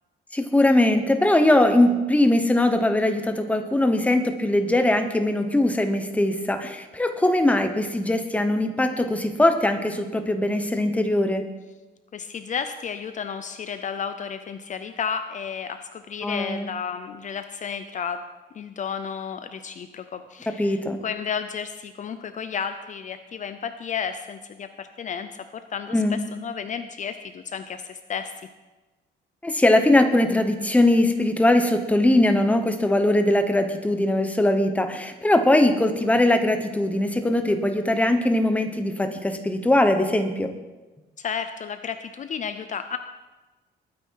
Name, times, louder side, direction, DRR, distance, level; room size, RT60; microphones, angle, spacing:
voice 1, 0.3-11.4 16.2-16.7 20.5-21.0 25.9-26.2 29.4-40.5, left 1 dB, 5° left, 7 dB, 1.0 m, -21 dB
voice 2, 12.1-18.3 18.5-25.4 25.7-28.5 41.2-43.0, left 7 dB, 45° left, 9 dB, 0.6 m, -32 dB
21.0 x 9.4 x 4.7 m, 1.2 s
cardioid pair, 155°, 18 cm